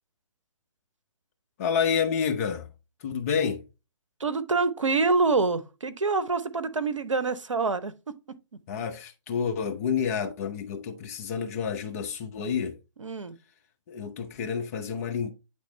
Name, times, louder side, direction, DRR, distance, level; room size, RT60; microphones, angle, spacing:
voice 1, 1.6-2.7 3.0-3.6 8.7-12.8 13.9-15.3, left 7 dB, 30° left, 0.8 m, -29 dB
voice 2, 4.2-8.1 13.0-13.4, right 3 dB, 80° right, 0.8 m, -26 dB
9.1 x 3.3 x 3.1 m
figure-of-eight pair, 140°, 16 cm